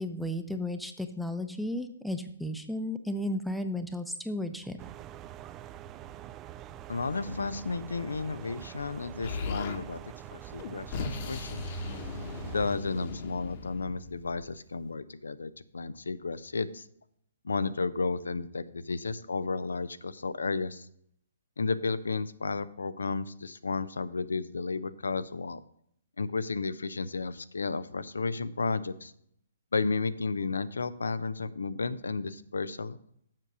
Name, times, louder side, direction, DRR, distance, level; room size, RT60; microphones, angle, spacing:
voice 1, 0.0-4.8, left 1 dB, ahead, 8 dB, 0.8 m, -34 dB
sound 1, 4.8-12.8, right 11 dB, 25° right, 0.4 m, -45 dB
voice 2, 6.9-11.7 12.5-16.8 17.4-20.9 21.6-25.6 26.2-29.1 29.7-33.0, left 4 dB, 80° left, 14 dB, 0.6 m, -33 dB
Explosion, 9.2-9.8 10.6-14.4, left 4 dB, 45° left, 1.2 m, -37 dB
7.5 x 6.6 x 6.0 m, 0.67 s
figure-of-eight pair, 130°, 0 cm